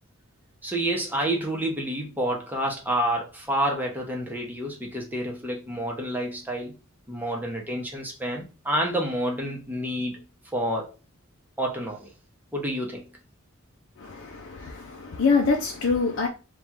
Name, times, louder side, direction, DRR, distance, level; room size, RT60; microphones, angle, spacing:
voice 1, 0.6-6.7 7.1-10.2 10.5-10.9 11.6-12.1 12.5-13.0, right 1 dB, 10° right, 1.0 m, -28 dB
voice 2, 14.0-16.3, left 4 dB, 60° left, 0.6 m, -25 dB
3.4 x 2.5 x 4.3 m
head